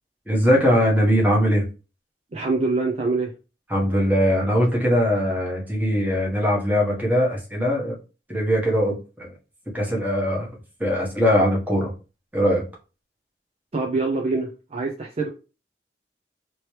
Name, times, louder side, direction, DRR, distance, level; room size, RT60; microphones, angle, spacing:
voice 1, 0.3-1.7 3.7-7.9 8.3-9.3 9.7-10.5 10.8-11.9 12.3-12.6, equal, 10° right, 1.2 m, -21 dB
voice 2, 2.3-3.3 13.7-15.3, right 3 dB, 35° right, 0.5 m, -25 dB
3.0 x 2.9 x 3.1 m
head